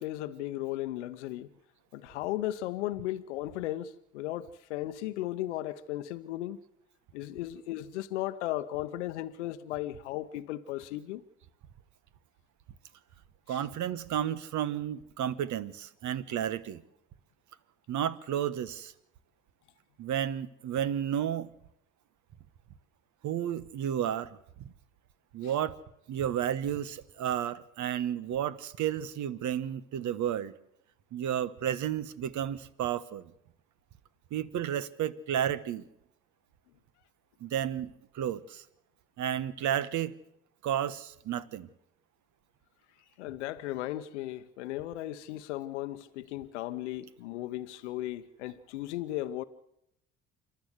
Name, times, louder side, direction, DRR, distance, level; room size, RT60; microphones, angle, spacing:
voice 1, 0.0-1.5 1.9-6.6 7.1-11.2 13.5-13.6 25.4-25.5 43.2-49.4, left 15 dB, 90° left, 0.8 m, -36 dB
voice 2, 13.5-16.8 17.9-18.9 20.0-21.5 23.2-24.4 25.3-25.8 26.1-30.5 31.1-33.3 34.3-35.9 37.4-38.6 39.2-40.2 40.6-41.7, right 10 dB, 60° right, 1.2 m, -32 dB
27.0 x 12.0 x 8.0 m
hypercardioid pair, 65°, 34 cm